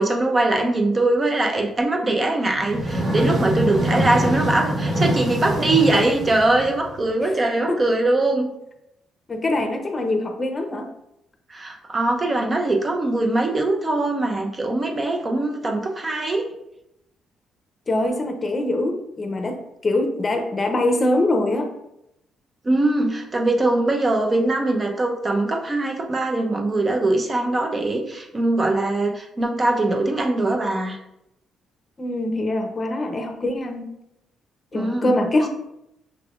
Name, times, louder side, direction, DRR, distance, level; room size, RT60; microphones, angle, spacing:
voice 1, 0.0-8.5 11.5-16.5 22.6-31.0 34.7-35.1, right 2 dB, 30° right, 3 dB, 0.8 m, -22 dB
sound 1, 2.5-7.1, right 1 dB, 50° right, 1.2 m, -24 dB
voice 2, 9.3-10.9 17.9-21.7 32.0-33.9 34.7-35.5, left 1 dB, 30° left, 5 dB, 0.7 m, -23 dB
5.9 x 3.3 x 2.5 m, 0.83 s
cardioid pair, 90°, 0 cm